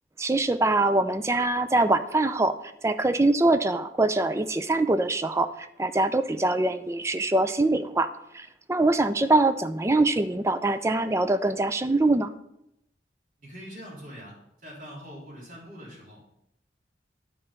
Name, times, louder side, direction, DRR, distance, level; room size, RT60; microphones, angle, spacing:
voice 1, 0.2-2.5 2.8-12.3, right 2 dB, 15° right, 11 dB, 0.4 m, -23 dB
voice 2, 13.4-16.2, equal, 50° right, -5 dB, 3.6 m, -43 dB
10.0 x 4.4 x 5.2 m, 0.80 s
head